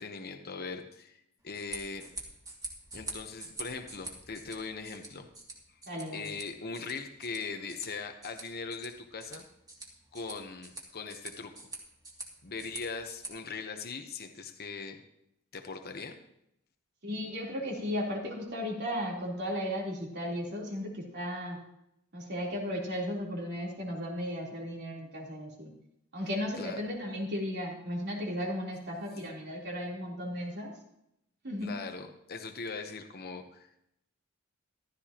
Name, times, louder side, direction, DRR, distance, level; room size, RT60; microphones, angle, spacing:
voice 1, 0.0-2.0 2.9-5.3 5.7-5.8 6.1-9.5 10.1-11.5 12.4-15.0 15.5-16.2 26.6-26.8 31.6-33.8, left 4 dB, 50° left, 5 dB, 1.0 m, -40 dB
sound 1, 1.4-13.3, right 2 dB, 20° right, 2.4 m, -46 dB
voice 2, 5.9-6.3 17.0-21.6 22.1-25.7 26.1-30.7 31.4-31.7, equal, 55° right, -3 dB, 3.6 m, -35 dB
15.0 x 13.5 x 3.0 m, 0.80 s
head